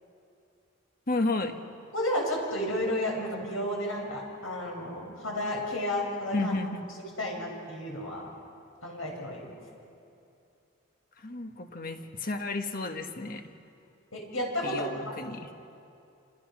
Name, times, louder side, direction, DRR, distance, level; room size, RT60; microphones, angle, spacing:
voice 1, 1.1-1.6 6.3-6.9 11.2-13.4 14.6-15.5, left 2 dB, 45° left, 6 dB, 1.5 m, -32 dB
voice 2, 1.9-6.5 7.2-8.3 8.8-9.5 14.1-14.9, left 1 dB, 75° left, 0 dB, 6.8 m, -32 dB
29.0 x 27.5 x 6.3 m, 2.6 s
head